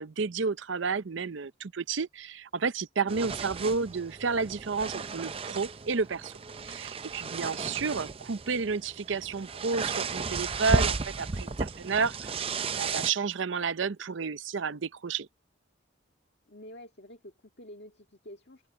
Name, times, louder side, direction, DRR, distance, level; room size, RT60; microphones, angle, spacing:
voice 1, 0.0-6.3 6.6-12.1 12.5-15.3, right 5 dB, 70° right, 0.6 m, -31 dB
voice 2, 3.0-3.5 11.4-12.0 16.5-18.7, left 1 dB, 55° left, 1.9 m, -49 dB
sound 1, 3.1-13.1, right 4 dB, 30° right, 0.5 m, -34 dB
head